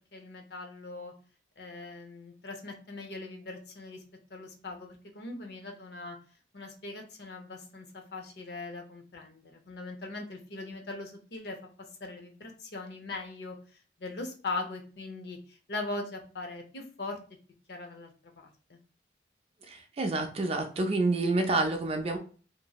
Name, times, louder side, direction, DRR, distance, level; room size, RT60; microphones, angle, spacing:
voice 1, 0.1-1.1 1.6-4.0 4.3-6.2 6.5-11.6 12.0-13.6 14.0-17.2 17.7-18.1 18.4-18.8, left 3 dB, 60° left, 4 dB, 0.6 m, -40 dB
voice 2, 19.7-22.2, right 2 dB, 30° right, 4 dB, 0.3 m, -28 dB
2.9 x 2.6 x 2.3 m, 0.39 s
head